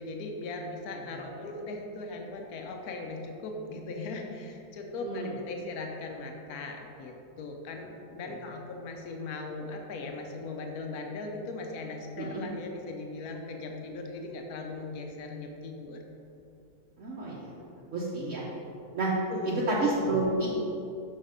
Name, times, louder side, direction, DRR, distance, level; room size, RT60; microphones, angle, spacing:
voice 1, 0.0-16.0 19.3-19.6, left 3 dB, 75° left, 3 dB, 1.3 m, -39 dB
voice 2, 17.0-17.5 17.9-18.4 18.9-19.1 19.7-20.5, right 2 dB, 55° right, -6 dB, 1.2 m, -29 dB
6.5 x 5.8 x 5.1 m, 2.8 s
omnidirectional pair, 1.6 m